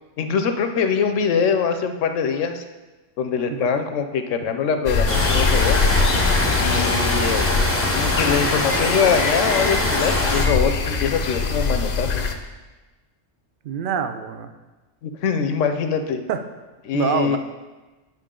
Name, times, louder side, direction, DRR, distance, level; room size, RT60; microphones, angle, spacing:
voice 1, 0.2-2.6 3.2-5.8 6.6-7.5 7.9-12.2 15.0-16.2 16.8-17.4, left 6 dB, 80° left, 7 dB, 1.0 m, -23 dB
sound 1, 4.9-12.3, left 4 dB, 50° left, 0.5 m, -23 dB
sound 2, 5.1-10.5, left 1 dB, 15° left, 0.8 m, -23 dB
voice 2, 13.6-14.5 16.3-16.4 16.9-17.4, right 8 dB, 55° right, 9 dB, 0.6 m, -25 dB
9.1 x 5.9 x 3.7 m, 1.2 s
omnidirectional pair, 1.3 m